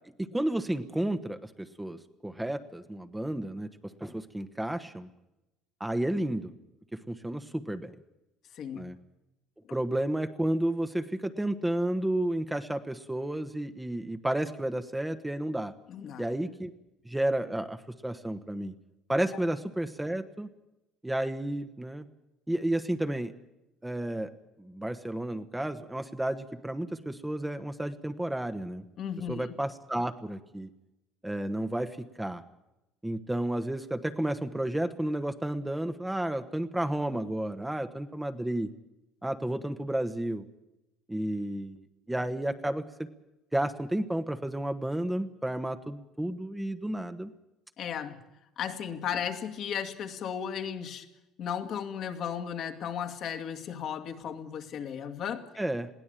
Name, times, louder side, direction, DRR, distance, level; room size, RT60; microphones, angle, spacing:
voice 1, 0.2-5.1 5.8-6.5 6.9-7.9 8.7-9.0 9.7-15.7 16.2-16.7 17.0-18.7 19.1-20.5 21.0-22.1 22.5-23.3 23.8-24.3 24.6-28.8 29.3-30.7 31.2-32.4 33.0-38.7 39.2-40.4 41.1-43.1 43.5-47.3 55.6-55.9, right 1 dB, 10° right, 8 dB, 1.2 m, -32 dB
voice 2, 15.9-16.2 29.0-29.5 47.8-48.2 48.6-51.1 51.4-55.5, left 8 dB, 60° left, 5 dB, 2.2 m, -35 dB
21.5 x 16.0 x 9.0 m, 0.92 s
supercardioid pair, 95°, 0 cm